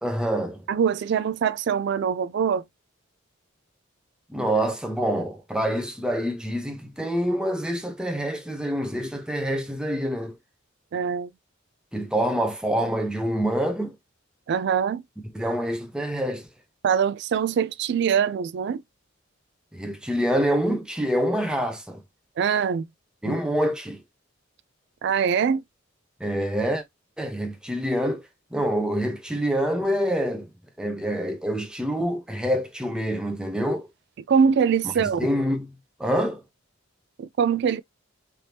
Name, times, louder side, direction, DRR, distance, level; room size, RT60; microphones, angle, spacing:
voice 1, 0.0-0.7 4.3-10.4 11.9-13.9 15.3-16.5 19.7-22.0 23.2-24.0 26.2-26.8 27.2-28.2 28.5-30.5 30.8-33.9 34.8-35.7 36.0-36.4, equal, 5° right, 0.7 m, -26 dB
voice 2, 0.7-2.6 10.9-11.3 14.5-15.0 16.8-18.8 22.4-22.9 23.2-23.4 25.0-25.6 34.3-35.3 37.2-37.8, right 7 dB, 55° right, 0.3 m, -23 dB
3.4 x 2.8 x 2.8 m
head